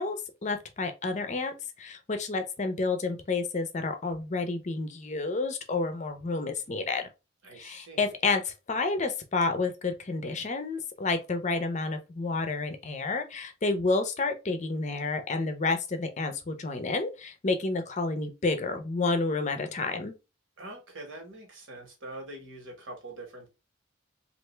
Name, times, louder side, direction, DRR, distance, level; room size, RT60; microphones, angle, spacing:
voice 1, 0.0-7.0 7.6-20.2, left 3 dB, 40° left, 0.6 m, -30 dB
voice 2, 7.4-8.1 20.6-23.5, right 2 dB, 75° right, 1.4 m, -44 dB
3.3 x 2.5 x 3.1 m
head